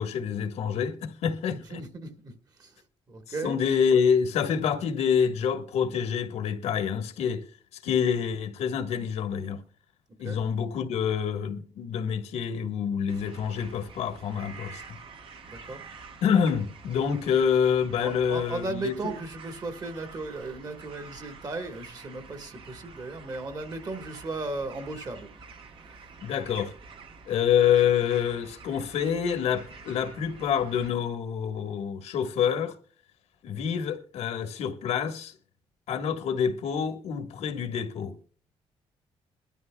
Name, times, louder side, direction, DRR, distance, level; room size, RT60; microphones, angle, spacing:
voice 1, 0.0-1.6 3.4-7.4 7.8-9.6 10.2-14.8 16.2-18.9 26.2-26.7 27.3-32.7 33.4-35.3 35.9-38.1, left 7 dB, 85° left, 1.6 m, -27 dB
voice 2, 1.5-3.6 10.2-10.4 15.5-15.8 18.0-25.5 25.8-26.1, right 3 dB, 35° right, 1.7 m, -36 dB
sound 1, 13.1-30.9, right 4 dB, 50° right, 1.3 m, -48 dB
21.5 x 12.5 x 2.3 m
cardioid pair, 140°, 11 cm